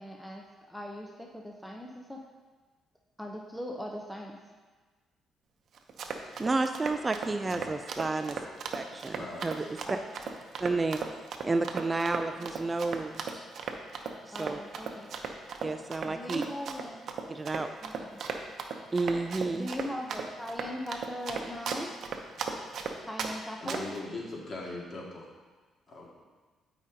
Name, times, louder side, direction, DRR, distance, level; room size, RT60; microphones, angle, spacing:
voice 1, 0.0-2.2 3.2-4.4 9.8-10.3 12.4-12.5 14.3-15.1 16.0-17.1 17.8-18.2 19.5-21.9 23.0-23.8, equal, 5° left, 0 dB, 0.7 m, -40 dB
Run, 5.8-23.3 23.7-24.0, right 6 dB, 65° right, 0.7 m, -36 dB
voice 2, 6.4-8.4 8.7-9.8 10.6-11.0 11.4-13.5 14.3-14.6 15.6-16.4 17.3-17.7 18.9-19.7, right 3 dB, 25° right, 7 dB, 0.3 m, -31 dB
voice 3, 7.4-7.7 9.1-9.7 23.6-25.2 25.9-26.1, left 2 dB, 45° left, -4 dB, 2.1 m, -40 dB
12.0 x 5.1 x 2.8 m, 1.3 s
cardioid pair, 90°, 0 cm